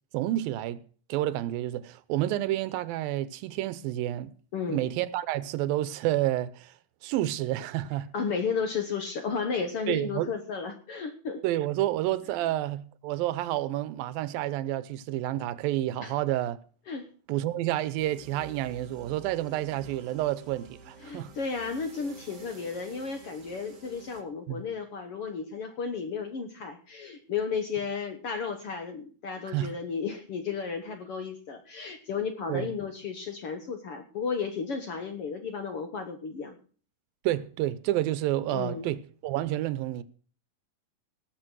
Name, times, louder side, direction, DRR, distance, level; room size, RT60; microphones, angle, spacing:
voice 1, 0.1-0.8 1.1-4.3 4.7-6.7 7.0-8.1 9.9-10.3 11.4-16.6 17.3-21.3 24.5-24.6 29.5-29.7 32.5-32.7 37.2-40.0, right 14 dB, 90° right, 2.6 m, -29 dB
voice 2, 8.1-11.4 16.0-16.1 16.9-17.1 21.0-36.5 38.5-38.9, left 5 dB, 60° left, 1.6 m, -33 dB
sound 1, 18.0-24.2, right 4 dB, 35° right, 1.5 m, -49 dB
18.5 x 7.3 x 6.2 m
omnidirectional pair, 4.0 m